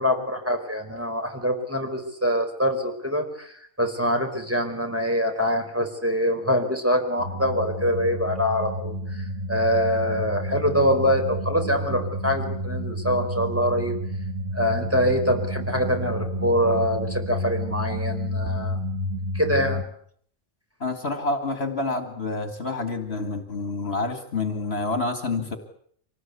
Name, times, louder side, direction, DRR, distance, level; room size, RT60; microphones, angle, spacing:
voice 1, 0.0-14.0 14.5-18.8 19.3-19.8, equal, 10° right, 3 dB, 4.8 m, -24 dB
sound 1, 7.2-19.8, equal, 75° right, 2.5 m, -30 dB
voice 2, 20.8-25.6, left 3 dB, 50° left, 7 dB, 2.4 m, -28 dB
26.0 x 19.0 x 8.4 m, 0.64 s
omnidirectional pair, 1.3 m